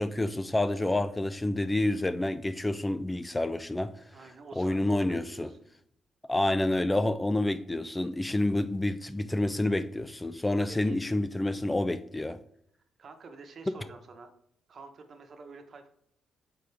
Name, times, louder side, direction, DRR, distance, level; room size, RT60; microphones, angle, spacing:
voice 1, 0.0-3.9 4.6-5.5 6.3-12.4, left 1 dB, 15° left, 0.3 m, -28 dB
voice 2, 4.1-5.7 10.7-11.0 13.0-14.3 14.7-15.9, right 4 dB, 50° right, 1.0 m, -48 dB
8.4 x 3.8 x 3.3 m
cardioid pair, 90°, 0 cm